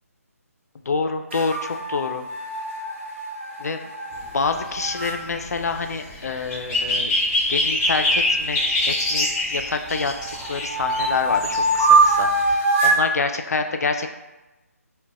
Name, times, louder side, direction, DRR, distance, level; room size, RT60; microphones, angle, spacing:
voice 1, 0.9-2.2 3.6-3.8 4.3-7.1 7.5-10.1 10.4-14.1, left 4 dB, 75° left, 6 dB, 0.3 m, -27 dB
sound 1, 1.3-5.2 8.1-9.3 9.8-13.0, right 3 dB, 50° right, 0.8 m, -23 dB
sound 2, 4.1-12.6, left 1 dB, 15° left, 0.5 m, -25 dB
3.8 x 2.1 x 2.3 m, 1.1 s
hypercardioid pair, 160°, 8 cm